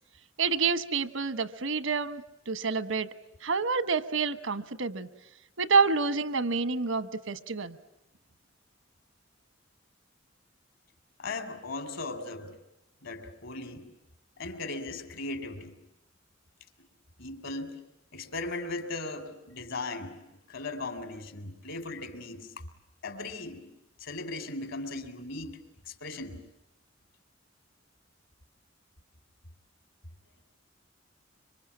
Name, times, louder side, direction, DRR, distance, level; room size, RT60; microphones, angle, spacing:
voice 1, 0.4-3.1 3.4-5.1 5.6-7.8, right 4 dB, 85° right, 13 dB, 1.3 m, -28 dB
voice 2, 11.2-12.6 13.0-13.9 14.4-15.8 17.2-17.8 18.1-22.6 23.0-23.7 24.0-25.6 25.9-26.4, left 3 dB, 75° left, 8 dB, 3.6 m, -38 dB
25.5 x 24.5 x 8.7 m, 0.89 s
head